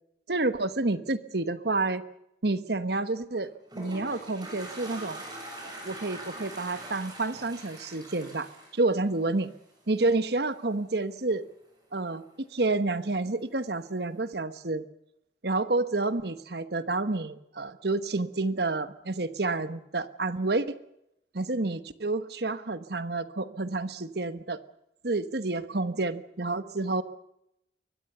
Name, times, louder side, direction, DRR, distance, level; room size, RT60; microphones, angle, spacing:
voice 1, 0.3-2.0 2.4-3.5 3.8-5.2 5.6-9.5 9.9-11.4 11.9-14.8 15.4-20.8 21.3-24.6 25.0-27.0, right 2 dB, 60° right, 12 dB, 1.2 m, -29 dB
Toilet flush, 3.3-9.7, right 1 dB, 20° right, 7.5 m, -43 dB
24.0 x 19.5 x 6.9 m, 0.81 s
head